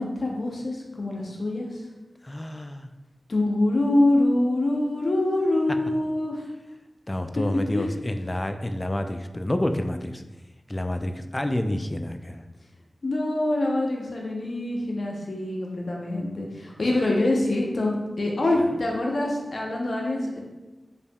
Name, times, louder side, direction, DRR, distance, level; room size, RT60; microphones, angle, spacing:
voice 1, 0.0-1.8 3.3-6.4 7.7-7.9 13.0-20.4, left 1 dB, 70° left, -1 dB, 0.7 m, -25 dB
voice 2, 2.2-2.9 7.1-10.2 10.7-12.5 18.6-18.7, left 1 dB, 25° left, 7 dB, 0.3 m, -29 dB
5.1 x 2.7 x 2.2 m, 1.1 s
cardioid pair, 40°, 0 cm